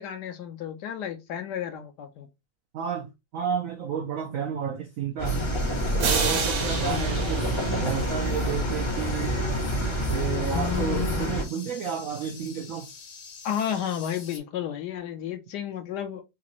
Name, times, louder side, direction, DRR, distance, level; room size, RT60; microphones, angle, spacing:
voice 1, 0.0-2.3 6.3-7.3 10.5-11.3 13.4-16.2, left 9 dB, 70° left, 1.1 m, -32 dB
voice 2, 2.7-5.4 5.9-9.4 10.1-12.9, right 7 dB, 80° right, 0.7 m, -32 dB
sound 1, 5.2-14.4, left 5 dB, 50° left, 1.0 m, -45 dB
sound 2, 5.2-11.4, equal, 30° left, 0.5 m, -27 dB
sound 3, 6.0-8.9, right 6 dB, 60° right, 1.1 m, -30 dB
4.0 x 2.5 x 2.9 m
omnidirectional pair, 2.0 m